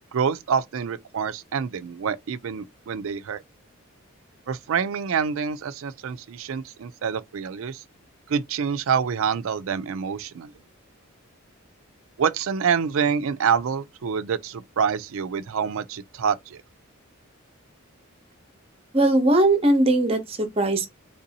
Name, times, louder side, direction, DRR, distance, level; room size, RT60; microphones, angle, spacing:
voice 1, 0.1-3.4 4.5-7.8 8.3-10.5 12.2-16.6, right 6 dB, 70° right, 0.4 m, -26 dB
voice 2, 18.9-20.9, right 1 dB, 25° right, 0.7 m, -20 dB
3.5 x 2.6 x 2.7 m
head